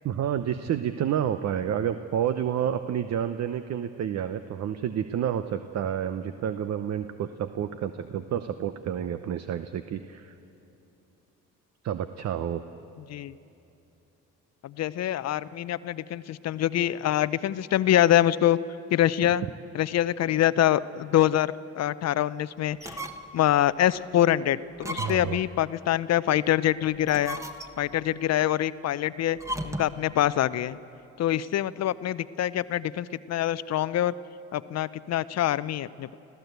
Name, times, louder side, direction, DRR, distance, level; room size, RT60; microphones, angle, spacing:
voice 1, 0.0-10.3 11.8-12.6 19.2-19.3 25.0-25.4, right 9 dB, 50° right, 10 dB, 0.8 m, -29 dB
voice 2, 14.6-18.6 18.9-19.4 19.7-23.0 23.3-27.4 27.8-29.4 29.6-30.8 31.2-34.1 34.5-36.1, left 12 dB, 50° left, 17 dB, 0.6 m, -25 dB
sound 1, 22.7-23.4 23.9-24.0 24.8-25.5 26.9-28.0 29.4-30.0, right 1 dB, 10° right, 1.5 m, -36 dB
25.5 x 15.5 x 8.2 m, 2.8 s
supercardioid pair, 75°, 33 cm